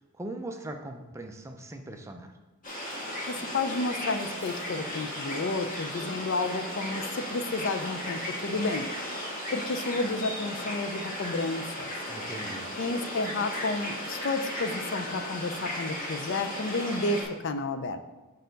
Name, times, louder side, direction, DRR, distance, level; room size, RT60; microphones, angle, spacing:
voice 1, 0.1-2.3 12.1-12.7, right 1 dB, 15° right, 4 dB, 0.4 m, -40 dB
sound 1, 2.6-17.2, left 1 dB, 35° left, 1.6 m, -36 dB
voice 2, 3.3-8.9 9.5-11.9 12.8-18.0, left 3 dB, 55° left, 10 dB, 0.4 m, -31 dB
6.4 x 5.4 x 4.0 m, 1.1 s
head